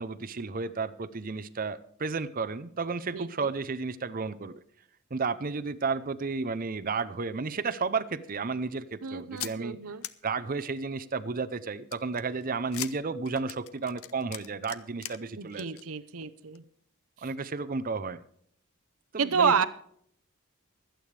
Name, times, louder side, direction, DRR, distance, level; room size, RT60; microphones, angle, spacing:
voice 1, 0.0-4.6 5.1-9.8 10.2-15.7 17.2-18.2 19.1-19.7, right 4 dB, 40° right, 13 dB, 0.6 m, -32 dB
voice 2, 3.1-3.5 9.0-10.0 15.4-16.6 19.2-19.7, right 6 dB, 85° right, 12 dB, 0.8 m, -29 dB
sound 1, 9.4-9.5 10.0-10.1 11.9-15.2 15.5-15.8 16.2-16.3 16.6-16.7, left 12 dB, 85° left, 0.7 m, -39 dB
24.5 x 9.0 x 3.4 m, 0.66 s
head